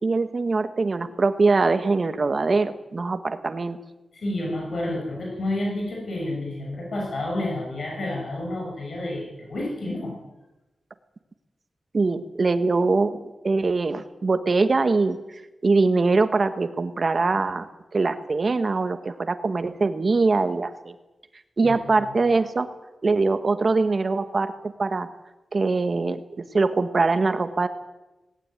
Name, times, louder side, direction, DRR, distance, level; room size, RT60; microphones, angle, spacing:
voice 1, 0.0-3.8 11.9-13.2 13.4-15.2 15.6-17.7 17.9-20.9 21.6-22.7 23.0-25.1 25.5-27.7, right 3 dB, 40° right, 10 dB, 1.5 m, -22 dB
voice 2, 4.1-10.1 21.6-21.7, left 1 dB, 55° left, -1 dB, 6.9 m, -29 dB
19.0 x 18.0 x 9.2 m, 1.0 s
wide cardioid pair, 145°, 0 cm